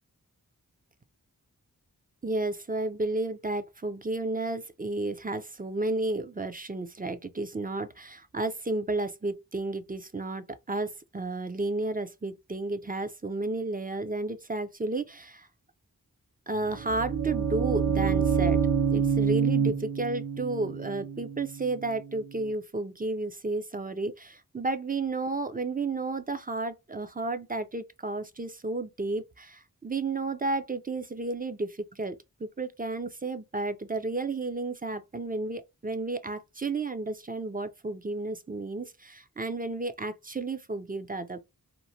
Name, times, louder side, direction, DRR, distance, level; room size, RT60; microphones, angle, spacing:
voice 1, 2.2-15.5 16.5-18.6 18.9-41.4, right 2 dB, 25° right, 0.4 m, -32 dB
sound 1, 16.6-22.4, right 6 dB, 65° right, 0.6 m, -27 dB
2.9 x 2.1 x 2.6 m
wide cardioid pair, 40°, 36 cm